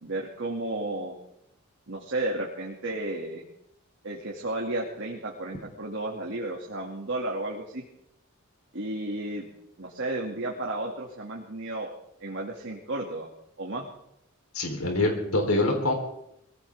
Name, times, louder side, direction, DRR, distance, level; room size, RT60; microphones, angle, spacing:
voice 1, 0.0-1.2 1.9-3.4 4.0-7.8 8.7-9.5 9.8-11.9 12.2-13.3 13.6-13.9, right 2 dB, 60° right, -2 dB, 2.5 m, -33 dB
voice 2, 14.5-15.9, left 2 dB, 85° left, 2 dB, 3.9 m, -25 dB
22.5 x 16.5 x 3.7 m, 0.79 s
head